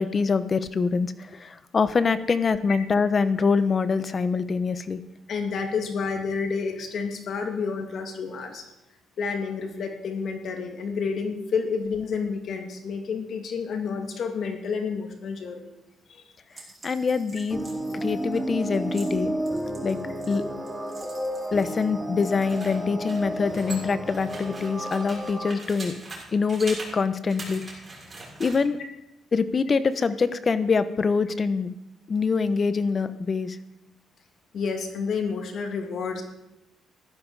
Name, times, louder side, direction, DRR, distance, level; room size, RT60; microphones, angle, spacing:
voice 1, 0.0-5.0 16.8-17.6 17.9-19.3 19.8-20.0 20.3-20.5 21.5-25.9 26.3-27.6 28.4-28.8 29.3-31.7 32.1-33.6, left 5 dB, 40° left, 13 dB, 0.9 m, -24 dB
voice 2, 5.3-8.6 9.2-15.7 16.1-16.2 34.5-36.2, left 5 dB, 65° left, 4 dB, 2.3 m, -30 dB
sound 1, 16.5-21.9 22.2-26.2 26.5-26.9 27.3-28.6, right 2 dB, 30° right, 6.9 m, -42 dB
sound 2, 17.5-25.5, right 1 dB, 10° right, 2.0 m, -32 dB
15.5 x 12.0 x 4.8 m, 0.90 s
cardioid pair, 90°, 0 cm